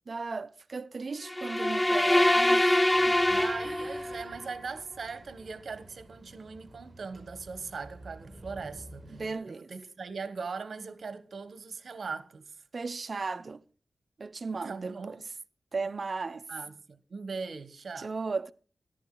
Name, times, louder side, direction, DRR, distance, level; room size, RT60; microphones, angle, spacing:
voice 1, 0.1-3.2 3.6-4.2 9.1-9.7 12.7-13.6 14.2-15.2 15.7-16.5 18.0-18.5, right 4 dB, 55° right, 0.6 m, -36 dB
sound 1, 1.3-4.3, left 1 dB, 15° left, 0.5 m, -24 dB
sound 2, 2.9-9.3, right 1 dB, 25° right, 5.6 m, -51 dB
voice 2, 3.3-9.2 9.5-12.5 14.6-15.2 16.5-18.1, right 4 dB, 70° right, 1.2 m, -40 dB
14.0 x 11.5 x 3.8 m
wide cardioid pair, 80°, 0 cm